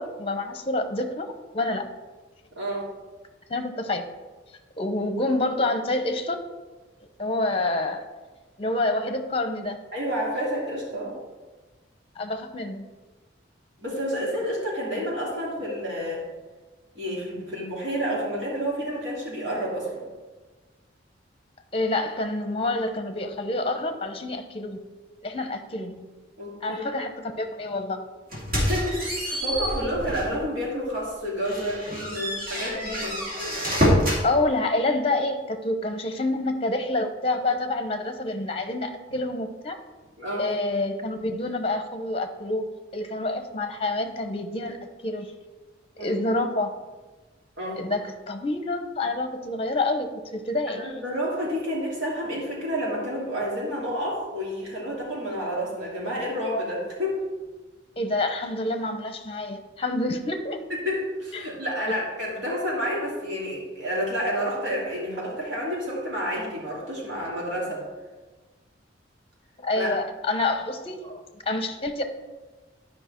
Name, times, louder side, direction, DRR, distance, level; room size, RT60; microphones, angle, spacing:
voice 1, 0.0-1.8 3.5-4.0 4.8-6.4 7.2-8.0 8.6-9.8 12.2-12.9 21.7-24.8 25.2-26.1 26.6-28.0 34.2-39.8 40.4-44.8 45.0-45.3 46.0-46.8 47.8-50.1 50.3-50.8 58.0-60.6 61.3-61.5 69.6-72.0, left 2 dB, 30° left, 7 dB, 0.8 m, -27 dB
voice 2, 2.6-2.9 9.9-11.1 13.8-16.3 16.9-20.1 26.4-26.8 28.6-33.2 40.2-40.4 46.0-46.1 47.6-47.8 50.8-57.2 60.7-67.8 69.8-69.9, equal, 80° right, -5 dB, 3.2 m, -29 dB
sound 1, 28.3-30.4 30.9-31.0 31.4-34.2, equal, 50° right, 2.7 m, -26 dB
10.5 x 5.3 x 4.4 m, 1.3 s
head